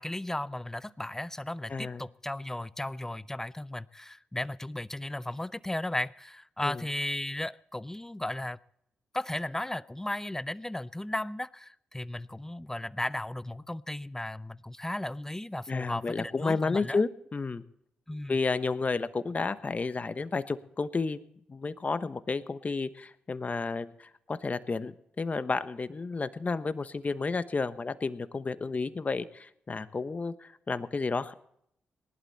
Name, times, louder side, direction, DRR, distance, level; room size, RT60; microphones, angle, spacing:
voice 1, 0.0-8.6 9.1-17.0 18.1-18.4, left 1 dB, 10° left, 0.6 m, -35 dB
voice 2, 1.7-2.0 6.6-6.8 15.7-17.6 18.3-21.2 21.5-31.3, left 4 dB, 40° left, 1.1 m, -31 dB
19.5 x 11.5 x 4.2 m
supercardioid pair, 45°, 4 cm